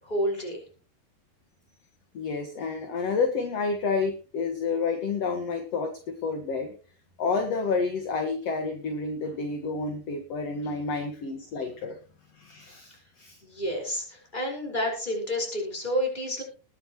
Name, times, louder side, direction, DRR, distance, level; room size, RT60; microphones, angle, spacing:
voice 1, 0.0-0.6 13.4-16.4, equal, 10° left, -1 dB, 5.2 m, -29 dB
voice 2, 2.1-6.7 7.2-12.0 12.3-13.4, left 4 dB, 55° left, 4 dB, 2.2 m, -29 dB
20.5 x 9.8 x 3.1 m, 0.36 s
omnidirectional pair, 4.4 m